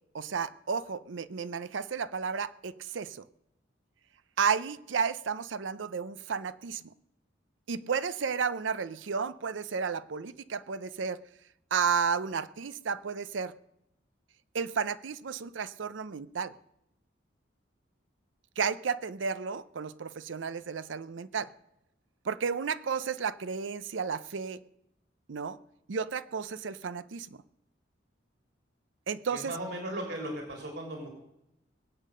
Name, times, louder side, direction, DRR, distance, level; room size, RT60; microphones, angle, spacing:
voice 1, 0.1-3.2 4.4-6.9 7.7-11.2 11.7-13.5 14.5-16.5 18.6-21.5 22.2-24.6 25.3-25.6 25.9-27.4 29.1-29.5, right 6 dB, 80° right, 0.6 m, -32 dB
voice 2, 29.3-31.1, right 1 dB, 60° right, 3.7 m, -37 dB
21.0 x 8.3 x 6.6 m
head